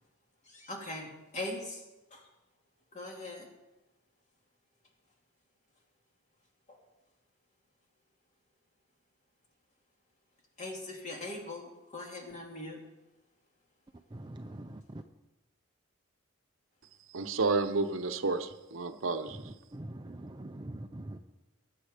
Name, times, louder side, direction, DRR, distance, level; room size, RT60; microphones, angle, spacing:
voice 1, 0.4-1.8 2.1-2.3 2.9-3.5 6.7-6.8 10.6-12.8, left 2 dB, 35° left, 0 dB, 2.5 m, -41 dB
voice 2, 14.1-15.0 19.3-21.2, right 1 dB, 20° right, 6 dB, 0.5 m, -43 dB
voice 3, 17.1-19.5, right 3 dB, 70° right, 9 dB, 0.8 m, -31 dB
19.0 x 7.9 x 5.1 m, 1.0 s
head